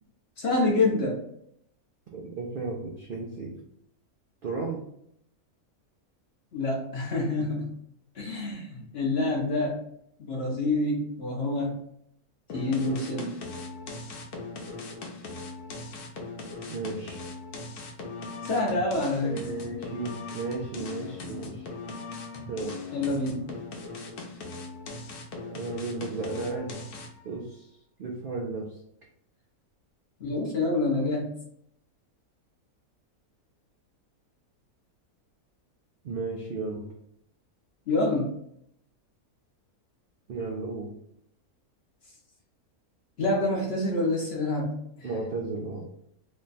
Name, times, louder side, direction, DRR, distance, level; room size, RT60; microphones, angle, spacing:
voice 1, 0.4-1.2 6.5-7.8 8.2-9.8 10.2-11.7 12.5-13.4 18.4-19.4 22.9-23.5 30.2-31.4 37.9-38.3 43.2-45.1, left 2 dB, 55° left, -1 dB, 0.8 m, -27 dB
voice 2, 2.1-3.5 4.4-4.8 16.7-17.2 19.2-21.7 22.5-22.8 25.5-26.8 27.2-27.6 28.0-28.7 36.0-36.9 40.3-40.9 45.0-45.8, right 3 dB, 70° right, -1 dB, 0.5 m, -34 dB
sound 1, 12.5-27.3, left 3 dB, 85° left, 1.1 m, -39 dB
3.2 x 2.2 x 3.9 m, 0.72 s
omnidirectional pair, 1.6 m